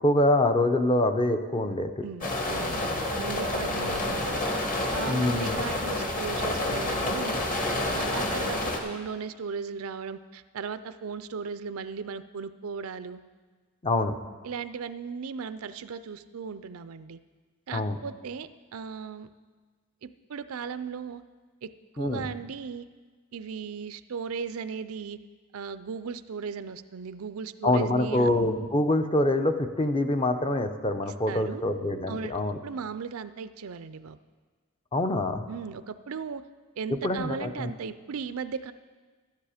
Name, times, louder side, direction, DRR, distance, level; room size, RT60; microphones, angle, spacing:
voice 1, 0.0-2.0 5.1-5.6 13.8-14.1 17.7-18.0 22.0-22.2 27.6-32.6 34.9-35.5 37.0-37.7, left 1 dB, 25° left, 7 dB, 0.6 m, -25 dB
voice 2, 2.0-4.5 4.9-7.4 8.0-13.2 14.4-17.2 17.7-19.3 20.0-21.2 21.6-22.9 23.3-25.2 25.5-28.3 31.1-31.6 32.1-32.3 32.6-34.2 35.5-36.4 36.8-38.7, right 6 dB, 70° right, 13 dB, 0.5 m, -37 dB
sound 1, 2.2-8.8, left 1 dB, 40° left, 1.5 m, -29 dB
12.5 x 10.5 x 5.0 m, 1.4 s
head